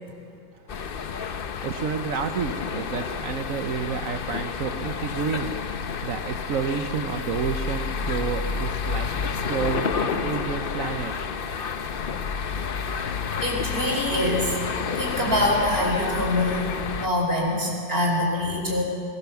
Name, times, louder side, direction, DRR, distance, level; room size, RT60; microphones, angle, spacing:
sound 1, 0.7-17.1, left 6 dB, 55° left, 0.6 m, -30 dB
voice 1, 1.6-5.6 6.0-9.1 9.5-11.1, right 6 dB, 60° right, 7 dB, 1.1 m, -29 dB
voice 2, 13.4-14.6 14.9-16.7 17.0-18.8, left 1 dB, 30° right, -2 dB, 4.6 m, -24 dB
21.5 x 17.5 x 7.1 m, 2.5 s
omnidirectional pair, 1.9 m